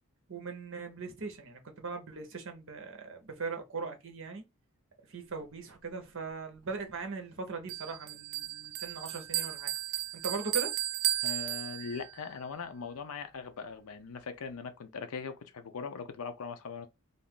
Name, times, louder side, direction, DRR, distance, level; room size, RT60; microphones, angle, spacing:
voice 1, 0.3-4.4 5.0-9.7 10.1-10.8, right 4 dB, 60° right, 0.8 m, -39 dB
Bell, 7.7-12.2, right 13 dB, 80° right, 0.4 m, -34 dB
voice 2, 11.2-16.9, left 5 dB, 70° left, 0.5 m, -40 dB
2.5 x 2.4 x 3.6 m
head